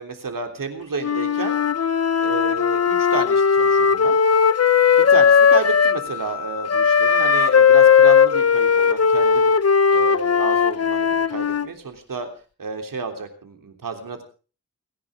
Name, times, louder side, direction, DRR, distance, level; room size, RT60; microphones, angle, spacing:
voice 1, 0.0-1.6 2.2-4.2 5.1-9.6 9.9-12.3 12.6-14.2, right 4 dB, 85° right, 6 dB, 3.4 m, -31 dB
Wind instrument woodwind instrument, 1.0-6.0 6.7-11.7, left 6 dB, 50° left, 0.9 m, -17 dB
Wind instrument woodwind instrument 2, 1.5-8.4, left 12 dB, 90° left, 1.7 m, -32 dB
29.0 x 10.5 x 3.6 m, 0.37 s
wide cardioid pair, 95°, 32 cm